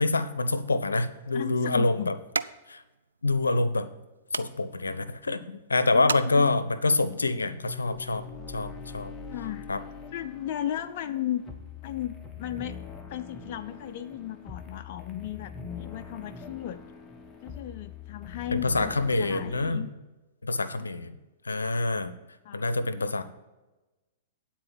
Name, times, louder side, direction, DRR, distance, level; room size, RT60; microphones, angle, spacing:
voice 1, 0.0-2.1 2.7-2.8 3.2-3.9 4.3-9.1 9.7-9.8 18.5-19.8 20.4-21.1 21.4-22.1 22.5-23.2, left 2 dB, 90° left, 12 dB, 0.6 m, -26 dB
sound 1, 0.7-7.0, right 4 dB, 85° right, 0.3 m, -39 dB
voice 2, 1.3-2.1 5.9-6.6 9.3-9.7 10.1-11.4 11.8-12.8 13.1-16.8 17.4-19.9 22.4-22.6, left 12 dB, 50° left, 8 dB, 0.4 m, -35 dB
sound 2, 7.6-19.7, left 5 dB, 15° left, 1.2 m, -43 dB
9.7 x 4.3 x 7.4 m, 1.1 s
hypercardioid pair, 115°, 0 cm